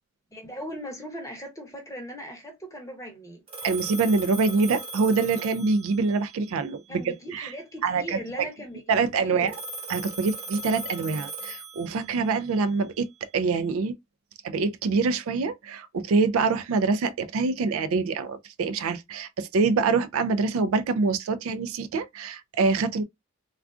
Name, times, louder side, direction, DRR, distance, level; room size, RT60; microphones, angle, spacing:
voice 1, 0.3-3.4 6.9-9.6, equal, 15° left, 0.8 m, -39 dB
Telephone, 3.5-6.3 9.5-12.3, right 3 dB, 25° right, 0.9 m, -38 dB
voice 2, 3.6-7.5 7.8-8.2 8.9-9.5 9.9-13.1 13.3-13.9 14.4-23.0, right 4 dB, 70° right, 0.3 m, -25 dB
3.5 x 2.3 x 2.4 m
head